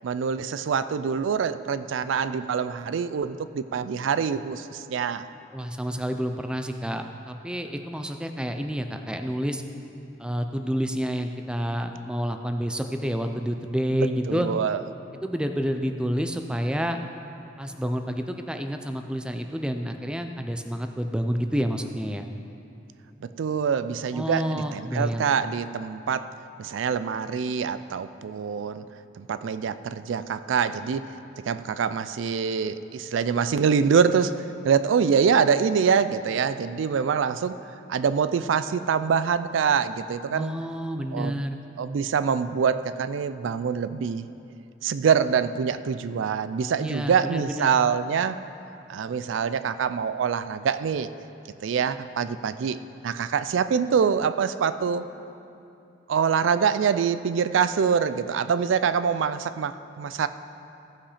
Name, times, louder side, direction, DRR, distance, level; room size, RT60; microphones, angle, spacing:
voice 1, 0.0-5.2 14.3-14.8 23.4-26.3 26.6-28.8 29.2-31.1 31.4-37.6 37.9-40.5 41.1-41.5 41.8-44.3 44.8-48.4 48.9-51.1 51.6-55.1 56.1-60.3, right 6 dB, 90° right, 13 dB, 0.4 m, -25 dB
voice 2, 5.5-9.6 10.2-14.5 15.2-17.0 17.6-22.3 24.1-25.3 40.3-41.6 46.8-47.7, equal, 5° right, 6 dB, 0.4 m, -29 dB
15.0 x 5.8 x 4.9 m, 2.8 s
head